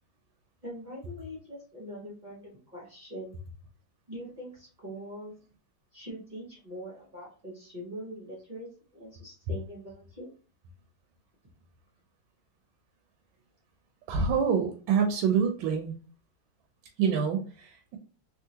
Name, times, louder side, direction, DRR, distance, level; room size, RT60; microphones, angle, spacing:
voice 1, 0.6-3.3 4.1-5.3 5.9-10.3, equal, 45° right, -4 dB, 0.6 m, -43 dB
voice 2, 14.1-15.9 17.0-18.0, right 6 dB, 85° right, 3 dB, 1.3 m, -26 dB
3.6 x 2.4 x 2.7 m, 0.39 s
omnidirectional pair, 2.1 m